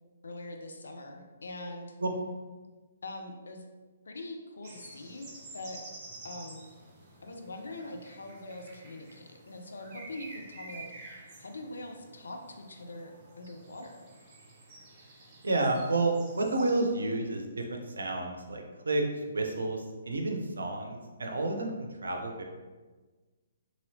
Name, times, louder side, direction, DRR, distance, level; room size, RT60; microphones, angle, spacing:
voice 1, 0.2-1.9 3.0-3.6 4.1-5.8 6.2-6.6 7.2-14.0, left 2 dB, 70° left, 3 dB, 0.4 m, -43 dB
sound 1, 4.6-16.9, right 2 dB, 30° right, 0.9 m, -50 dB
voice 2, 15.4-22.4, right 2 dB, 75° right, 3 dB, 0.5 m, -30 dB
2.9 x 2.8 x 2.7 m, 1.3 s
figure-of-eight pair, 130°, 0 cm